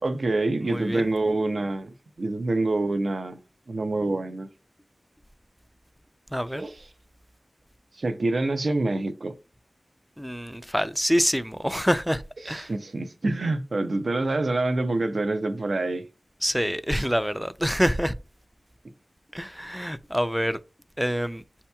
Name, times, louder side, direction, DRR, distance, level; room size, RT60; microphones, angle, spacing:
voice 1, 0.0-3.4 3.7-4.5 6.6-6.8 8.0-9.3 12.4-16.0, right 2 dB, 65° right, 0.5 m, -26 dB
voice 2, 0.7-1.1 6.3-6.7 10.2-12.7 16.4-18.2 19.3-20.6 21.0-21.4, equal, ahead, 0.3 m, -26 dB
8.2 x 2.8 x 2.2 m
wide cardioid pair, 65°, 0 cm